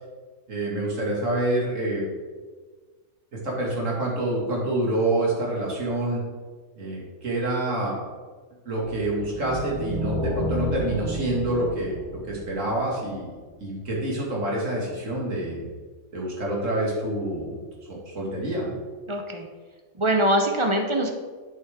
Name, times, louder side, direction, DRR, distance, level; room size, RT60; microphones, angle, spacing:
voice 1, 0.5-2.1 3.4-6.2 6.8-8.0 8.7-15.7 16.1-17.6 18.1-18.8, right 1 dB, 60° right, -3 dB, 2.4 m, -27 dB
sound 1, 9.0-13.3, equal, 85° right, 1.8 m, -31 dB
voice 2, 19.1-19.5 19.9-21.1, right 1 dB, 30° right, 3 dB, 0.5 m, -23 dB
8.3 x 7.2 x 3.5 m, 1.4 s
omnidirectional pair, 1.5 m